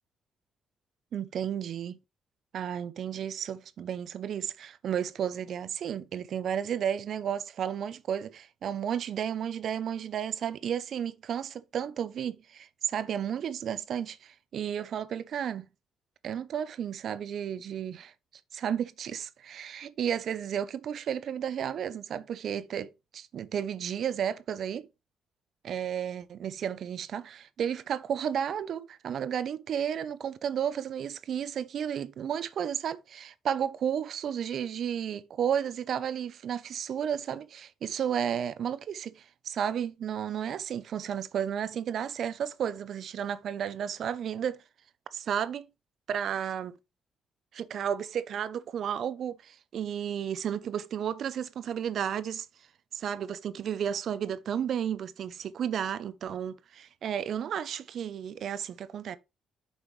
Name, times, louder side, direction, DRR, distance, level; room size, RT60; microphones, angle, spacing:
voice 1, 1.1-2.0 2.5-15.7 16.2-18.1 18.5-24.9 25.6-44.6 45.1-45.7 46.1-46.8 47.5-52.5 52.9-59.2, right 8 dB, 65° right, 0.6 m, -33 dB
6.9 x 5.4 x 3.2 m
cardioid pair, 90°, 0 cm